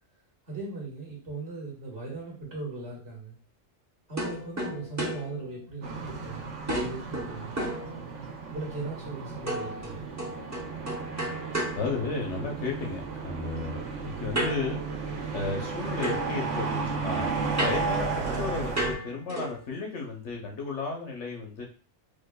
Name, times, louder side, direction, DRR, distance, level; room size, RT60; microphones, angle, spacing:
voice 1, 0.5-3.4 4.1-7.5 8.5-10.1, right 3 dB, 55° right, -3 dB, 1.7 m, -38 dB
sound 1, 4.2-6.3 6.7-8.5 9.5-12.7 14.3-15.7 16.0-19.7, right 1 dB, 15° right, 0.7 m, -35 dB
sound 2, 5.8-18.9, right 4 dB, 75° right, 1.0 m, -34 dB
voice 2, 11.7-21.6, left 4 dB, 70° left, 1 dB, 1.1 m, -34 dB
5.0 x 2.2 x 2.2 m, 0.36 s
omnidirectional pair, 1.3 m